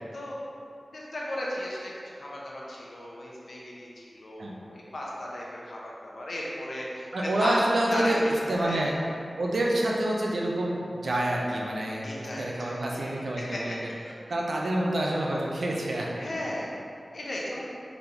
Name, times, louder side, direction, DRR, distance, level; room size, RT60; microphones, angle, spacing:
voice 1, 0.9-7.6 7.9-8.8 12.0-13.1 13.5-13.7 14.0-14.1 16.2-16.7 17.1-17.6, left 1 dB, 75° left, -5 dB, 0.7 m, -36 dB
voice 2, 7.1-8.9 9.4-13.8 14.3-16.4, right 1 dB, 80° right, -2 dB, 0.5 m, -27 dB
4.0 x 3.4 x 2.9 m, 2.6 s
wide cardioid pair, 75°, 0 cm